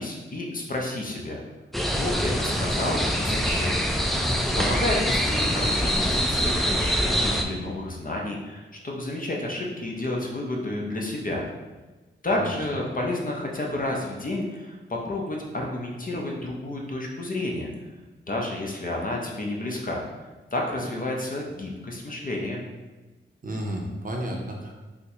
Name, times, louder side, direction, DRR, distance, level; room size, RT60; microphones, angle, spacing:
voice 1, 0.0-1.4 2.0-3.8 4.5-11.5 12.2-17.7 18.3-20.0 20.5-22.6, left 1 dB, 40° left, -1 dB, 0.6 m, -30 dB
sound 1, 1.7-7.4, equal, ahead, 0.3 m, -24 dB
voice 2, 23.4-24.7, right 1 dB, 40° right, 0 dB, 0.6 m, -32 dB
4.0 x 2.1 x 2.8 m, 1.2 s
cardioid pair, 65°, 21 cm